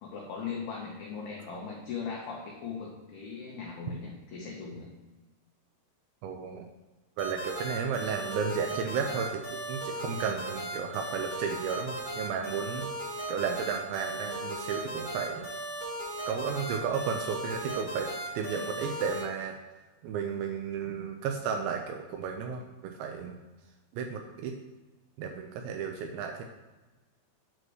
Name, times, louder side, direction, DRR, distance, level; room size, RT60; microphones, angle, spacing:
voice 1, 0.0-4.9, left 5 dB, 85° left, -2 dB, 2.2 m, -39 dB
voice 2, 6.2-6.7 7.2-12.9 13.3-15.5 16.3-19.6 20.0-23.4 23.9-24.5 25.2-26.4, right 6 dB, 85° right, 4 dB, 2.6 m, -33 dB
sound 1, 7.2-19.2, right 1 dB, 25° right, 1.0 m, -37 dB
8.7 x 3.1 x 6.1 m, 1.2 s
omnidirectional pair, 5.6 m